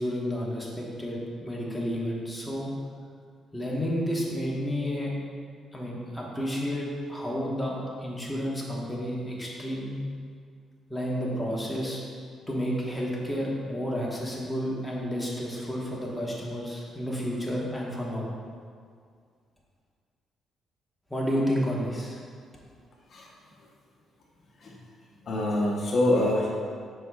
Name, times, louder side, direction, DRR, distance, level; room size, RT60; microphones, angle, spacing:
voice 1, 0.0-2.7 3.5-5.1 5.7-10.0 10.9-12.0 12.5-18.3 21.1-22.2, equal, 5° left, -4 dB, 1.3 m, -31 dB
voice 2, 25.2-26.5, left 1 dB, 50° left, -2 dB, 0.9 m, -25 dB
7.7 x 5.5 x 2.4 m, 2.1 s
cardioid pair, 90°, 0 cm